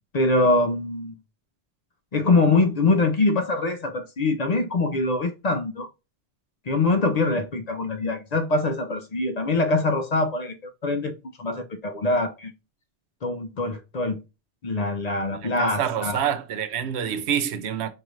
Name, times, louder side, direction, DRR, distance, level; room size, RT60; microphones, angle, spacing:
voice 1, 0.1-1.1 2.1-5.9 6.7-10.5 10.8-11.1 11.4-12.5 13.2-14.2 14.6-16.2, left 2 dB, 50° left, 0.5 m, -23 dB
voice 2, 15.3-17.9, right 9 dB, 75° right, 0.9 m, -27 dB
4.8 x 2.5 x 3.0 m
omnidirectional pair, 1.2 m